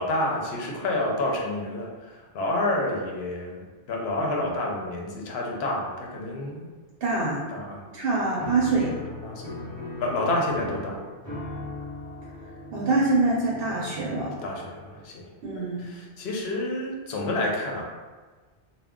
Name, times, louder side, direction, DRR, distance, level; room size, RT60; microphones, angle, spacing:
voice 1, 0.0-6.6 7.5-7.9 9.2-11.0 14.4-15.3 15.8-17.8, left 1 dB, 65° left, -1 dB, 0.8 m, -29 dB
voice 2, 7.0-7.4 7.9-8.9 12.7-14.3 15.4-15.8, right 3 dB, 65° right, -5 dB, 0.7 m, -24 dB
Piano, 8.4-15.2, left 2 dB, 5° right, 0.8 m, -39 dB
2.2 x 2.1 x 3.5 m, 1.3 s
omnidirectional pair, 1.2 m